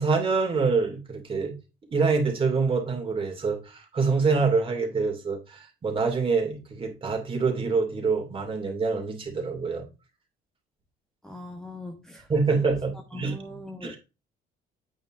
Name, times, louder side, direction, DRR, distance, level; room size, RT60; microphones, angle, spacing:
voice 1, 0.0-1.5 1.9-9.9 12.3-13.3 13.8-14.0, right 4 dB, 30° right, 2.4 m, -26 dB
voice 2, 11.2-12.3 12.6-12.7 13.1-14.0, left 2 dB, 5° left, 0.9 m, -40 dB
8.7 x 5.3 x 2.5 m
cardioid pair, 110°, 17 cm